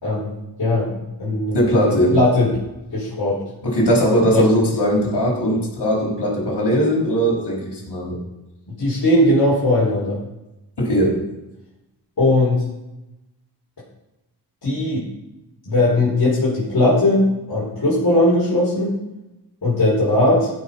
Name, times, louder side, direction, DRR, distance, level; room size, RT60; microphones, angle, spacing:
voice 1, 0.0-2.5 2.9-3.4 4.3-4.5 8.8-10.2 12.2-12.6 14.6-15.0 15.7-18.9 19.6-20.5, left 1 dB, 65° left, -9 dB, 4.5 m, -19 dB
voice 2, 1.5-2.2 3.6-8.2 10.8-11.2, equal, 85° left, -3 dB, 4.3 m, -19 dB
16.0 x 5.7 x 5.6 m, 0.96 s
wide cardioid pair, 75°, 40 cm